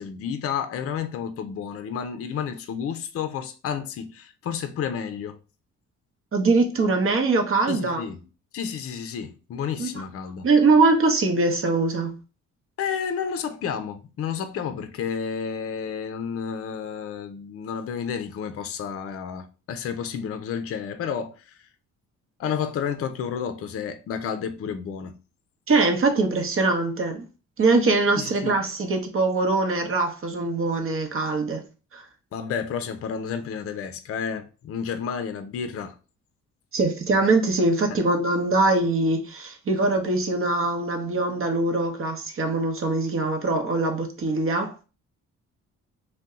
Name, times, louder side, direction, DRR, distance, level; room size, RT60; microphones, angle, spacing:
voice 1, 0.0-5.4 7.7-8.2 8.5-10.5 12.8-21.5 22.4-25.2 28.2-28.5 32.3-36.0, left 7 dB, 50° left, 0.5 m, -31 dB
voice 2, 6.3-8.1 9.8-10.0 10.4-12.1 25.7-27.2 27.6-31.6 31.9-32.0 36.7-44.8, right 3 dB, 45° right, 0.8 m, -22 dB
2.7 x 2.2 x 3.5 m
cardioid pair, 90°, 30 cm